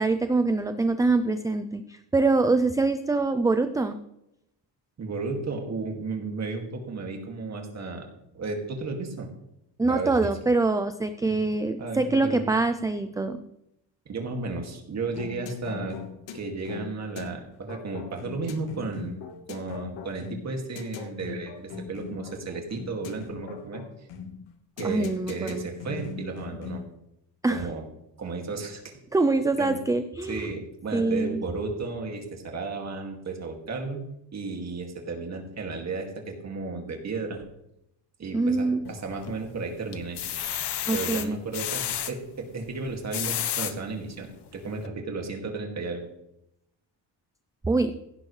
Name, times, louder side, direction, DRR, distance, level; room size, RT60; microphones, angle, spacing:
voice 1, 0.0-4.0 9.8-13.4 24.8-25.7 27.4-27.6 29.1-30.5 30.9-31.4 38.3-38.8 40.9-41.4 47.6-47.9, right 3 dB, 10° right, 9 dB, 0.3 m, -24 dB
voice 2, 5.0-8.1 8.3-9.3 9.9-10.3 11.3-11.4 11.8-12.5 14.1-16.0 16.3-19.2 19.5-23.8 24.8-26.8 27.5-27.8 28.2-28.9 29.6-29.8 30.3-37.4 38.2-40.2 40.9-46.1, right 3 dB, 35° right, 2 dB, 2.3 m, -34 dB
sound 1, 15.1-27.0, left 6 dB, 85° left, 1.6 m, -40 dB
sound 2, 38.8-39.5 39.9-42.1 42.9-43.7 44.3-44.4 44.8-44.9, left 10 dB, 65° left, 1.1 m, -31 dB
16.0 x 10.5 x 3.2 m, 0.82 s
cardioid pair, 145°, 43 cm